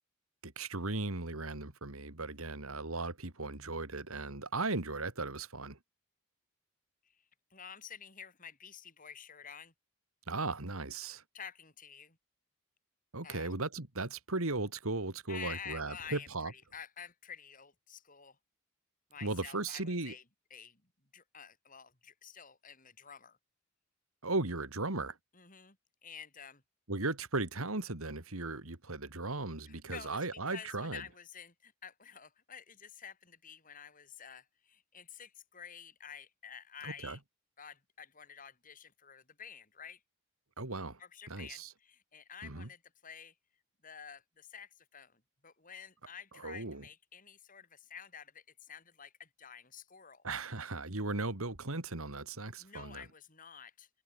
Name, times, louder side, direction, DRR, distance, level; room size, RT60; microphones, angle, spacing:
voice 1, 0.4-5.8 10.3-11.2 13.1-16.5 19.2-20.1 24.2-25.2 26.9-31.0 36.8-37.2 40.6-41.0 41.3-41.7 42.4-42.7 46.4-46.8 50.2-53.0, right 2 dB, 75° right, 2.7 m, -37 dB
voice 2, 7.5-9.7 11.3-12.2 13.2-13.5 15.3-18.4 19.1-20.2 20.5-20.8 21.1-23.4 25.3-25.8 26.0-26.6 29.7-37.2 37.6-40.0 41.0-43.3 43.8-50.2 52.6-53.9, left 7 dB, 40° left, 4.6 m, -50 dB
head